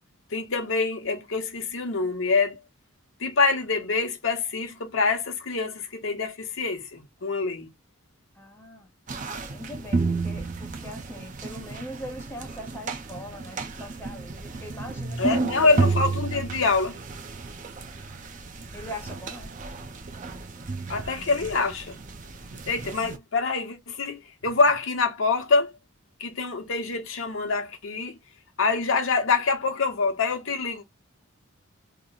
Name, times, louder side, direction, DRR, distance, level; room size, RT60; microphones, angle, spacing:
voice 1, 0.3-2.6 3.2-7.7 15.2-17.0 20.9-22.0 22.7-25.7 26.2-28.2 28.6-30.8, left 4 dB, 60° left, 0.9 m, -25 dB
voice 2, 8.4-8.9 9.5-15.8 18.7-19.5 20.3-20.4, left 1 dB, 10° left, 0.8 m, -41 dB
sound 1, 9.1-23.2, right 3 dB, 35° right, 0.5 m, -32 dB
3.0 x 2.1 x 3.7 m
head